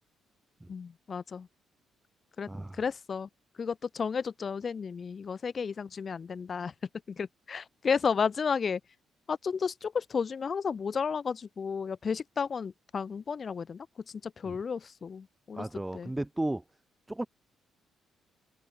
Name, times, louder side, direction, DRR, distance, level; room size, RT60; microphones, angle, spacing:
voice 1, 0.7-1.5 2.4-2.5 2.8-3.3 3.6-6.7 7.1-8.8 9.3-15.7 15.9-16.1, left 6 dB, 45° left, 2.4 m, -32 dB
voice 2, 2.5-2.8 14.4-14.6 15.6-16.6 17.1-17.3, right 1 dB, 10° right, 2.9 m, -34 dB
cardioid pair, 90°, 0 cm